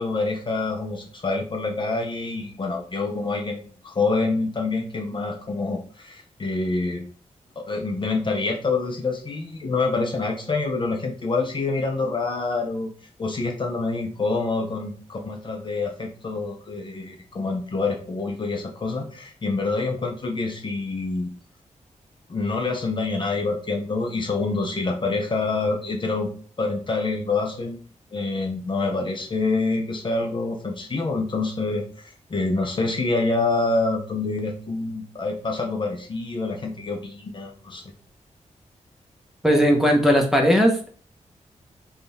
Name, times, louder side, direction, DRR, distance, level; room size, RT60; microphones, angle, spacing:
voice 1, 0.0-7.0 7.6-12.9 13.2-21.3 22.3-26.3 26.6-27.8 28.1-37.8, left 3 dB, 40° left, 1 dB, 0.6 m, -26 dB
voice 2, 39.4-40.9, equal, 5° right, 0 dB, 0.8 m, -18 dB
3.5 x 2.4 x 4.0 m, 0.43 s
wide cardioid pair, 95°, 13 cm